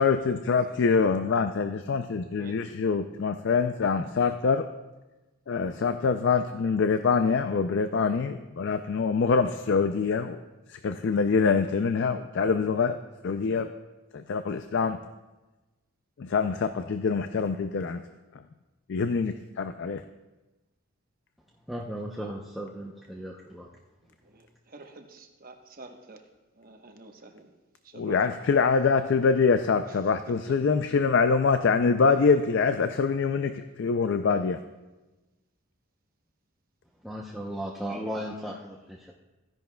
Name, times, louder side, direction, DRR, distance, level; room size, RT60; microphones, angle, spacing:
voice 1, 0.0-4.7 5.5-10.4 10.7-13.0 13.2-13.7 14.1-15.0 16.2-18.0 18.3-18.4 18.9-20.0 27.9-34.6, left 5 dB, 55° left, 9 dB, 0.4 m, -25 dB
voice 2, 21.7-23.7 37.0-39.1, equal, ahead, -3 dB, 0.6 m, -36 dB
voice 3, 24.2-26.2 26.6-27.5 28.0-28.2, right 2 dB, 40° right, 4 dB, 1.0 m, -48 dB
15.0 x 10.5 x 2.3 m, 1.1 s
head